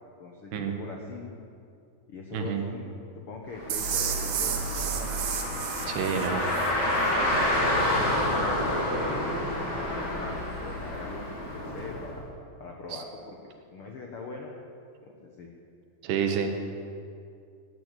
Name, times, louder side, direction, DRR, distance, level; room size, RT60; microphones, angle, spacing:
voice 1, 0.2-1.3 2.1-2.9 3.3-5.1 5.7-6.6 6.9-9.2 9.7-12.2 12.6-13.4 13.7-14.5 15.0-15.5, left 3 dB, 85° left, 0 dB, 1.2 m, -41 dB
voice 2, 2.3-2.6 5.9-6.4 12.9-13.0 16.0-16.5, right 7 dB, 85° right, 5 dB, 3.5 m, -29 dB
Car, 3.5-12.1, left 1 dB, 30° left, 4.0 m, -29 dB
sound 1, 3.7-6.7, right 8 dB, 65° right, 2.6 m, -32 dB
17.5 x 9.9 x 8.3 m, 2.4 s
omnidirectional pair, 4.7 m